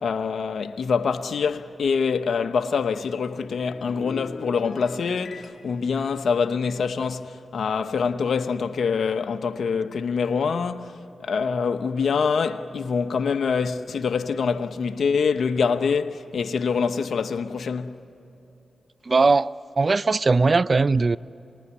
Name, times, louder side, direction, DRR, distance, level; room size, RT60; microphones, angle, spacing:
voice 1, 0.0-18.0, left 5 dB, 75° left, 1.0 m, -25 dB
sound 1, 3.3-7.9 8.2-8.5, left 4 dB, 60° left, 1.9 m, -42 dB
voice 2, 19.1-21.2, right 3 dB, 50° right, 0.5 m, -20 dB
27.5 x 20.5 x 9.7 m
supercardioid pair, 40°, 0 cm